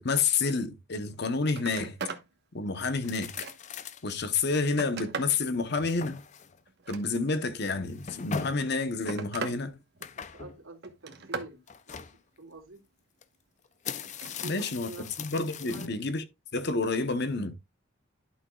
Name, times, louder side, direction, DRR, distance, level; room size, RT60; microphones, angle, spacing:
voice 1, 0.0-2.0 2.5-3.3 4.0-6.2 6.9-9.8 14.4-14.9 15.2-16.2 16.5-17.6, left 4 dB, 55° left, 0.9 m, -29 dB
Telephone, 1.0-1.2 1.5-2.3 2.7-3.8 4.4-5.4 6.7-7.5 8.5-9.6 9.9-10.4 10.8-11.5 14.0-14.4 15.8-15.9, right 4 dB, 55° right, 1.2 m, -39 dB
sound 1, 3.0-4.3 4.8-4.9 5.5-6.6 7.8-8.7 10.0-10.6 11.7-12.2 13.2-13.3 13.7-15.9, left 6 dB, 35° left, 0.5 m, -40 dB
voice 2, 10.2-11.6 11.9-12.1 12.4-12.8 14.4-15.1 15.6-16.1, right 2 dB, 90° right, 2.3 m, -46 dB
11.5 x 6.2 x 2.3 m
head